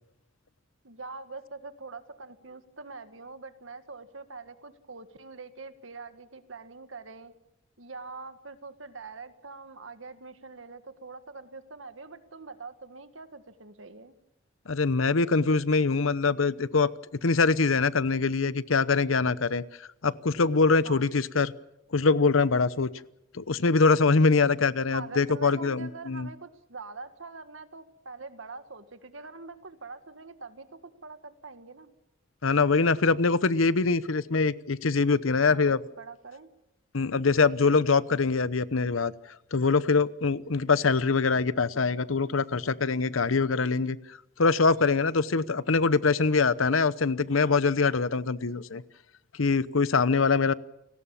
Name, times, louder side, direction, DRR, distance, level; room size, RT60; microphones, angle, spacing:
voice 1, 0.8-7.3 7.8-14.1 20.8-21.1 24.9-31.9 35.4-35.6 36.0-36.5, right 4 dB, 70° right, 10 dB, 1.8 m, -44 dB
voice 2, 14.7-16.9 17.2-19.6 20.0-21.5 21.9-22.9 23.3-26.3 32.4-35.8 36.9-39.1 39.5-44.0 44.4-48.8 49.3-50.5, left 4 dB, 85° left, 17 dB, 0.8 m, -23 dB
29.5 x 18.5 x 7.2 m, 0.85 s
head